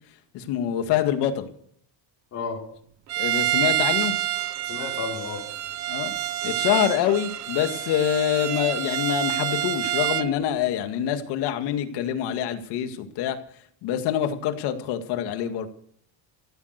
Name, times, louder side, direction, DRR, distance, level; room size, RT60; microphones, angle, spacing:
voice 1, 0.3-1.5 3.2-4.2 5.9-6.1 6.4-13.4 13.8-15.7, left 10 dB, 60° left, 7 dB, 2.1 m, -25 dB
voice 2, 2.3-2.7 4.6-5.5, left 5 dB, 35° left, 1 dB, 3.7 m, -32 dB
Bowed string instrument, 3.1-10.3, right 14 dB, 35° right, 0.8 m, -27 dB
15.5 x 12.5 x 6.7 m, 0.63 s
cardioid pair, 180°, 45 cm